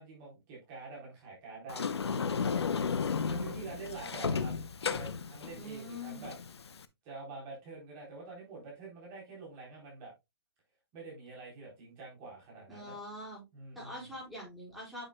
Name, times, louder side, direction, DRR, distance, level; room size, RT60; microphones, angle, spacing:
voice 1, 0.0-4.5 4.9-6.3 7.0-10.1 10.9-13.0 13.5-14.1, right 3 dB, 30° right, -3 dB, 3.7 m, -47 dB
Sliding door, 1.7-6.8, left 5 dB, 85° left, 0.7 m, -34 dB
voice 2, 5.5-6.3 12.7-13.5 13.7-15.1, left 1 dB, ahead, -6 dB, 4.6 m, -44 dB
8.9 x 6.5 x 2.2 m, 0.22 s
hypercardioid pair, 150°, 13 cm